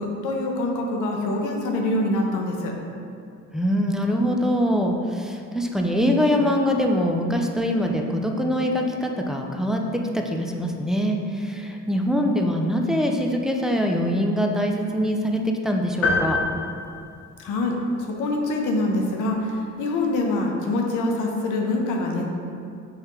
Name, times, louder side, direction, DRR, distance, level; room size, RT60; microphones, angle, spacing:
voice 1, 0.0-2.7 17.4-22.2, left 2 dB, 85° left, 1 dB, 0.7 m, -25 dB
voice 2, 3.5-16.4, equal, ahead, 1 dB, 0.3 m, -23 dB
sound 1, 16.0-17.8, left 3 dB, 50° left, 0.9 m, -26 dB
4.7 x 3.3 x 3.0 m, 2.4 s
cardioid pair, 90°, 30 cm